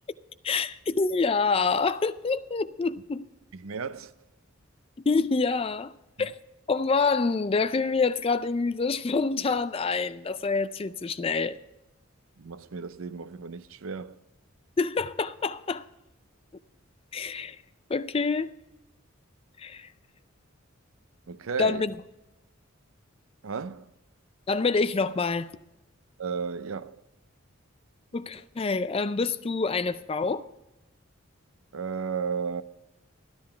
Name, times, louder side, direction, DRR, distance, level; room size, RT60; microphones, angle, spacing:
voice 1, 0.4-3.2 5.1-5.9 6.2-6.4 6.7-11.6 14.8-15.8 17.1-17.6 17.9-18.5 19.6-19.9 21.6-21.9 24.5-25.5 28.1-30.5, left 4 dB, 25° left, 0.4 m, -26 dB
voice 2, 3.5-4.1 12.4-14.2 21.3-21.8 23.4-23.9 26.2-27.0 31.7-32.6, right 5 dB, 75° right, 0.6 m, -34 dB
13.0 x 10.5 x 4.4 m
head